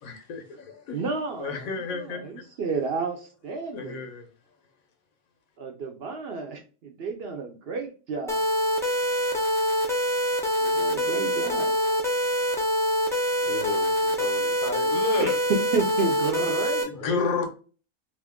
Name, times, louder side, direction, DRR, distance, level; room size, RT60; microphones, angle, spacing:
voice 1, 0.0-1.0 1.4-2.4 3.7-4.3 14.9-15.4 16.3-16.4 16.8-17.5, left 5 dB, 90° left, 1.3 m, -31 dB
voice 2, 0.9-4.0 5.6-8.4 10.6-11.9 15.2-15.4 15.7-17.2, right 4 dB, 60° right, 0.7 m, -32 dB
sound 1, 8.3-16.8, equal, 5° left, 0.4 m, -25 dB
voice 3, 13.4-15.3 16.5-17.3, left 3 dB, 55° left, 0.6 m, -37 dB
2.9 x 2.5 x 3.5 m
omnidirectional pair, 1.4 m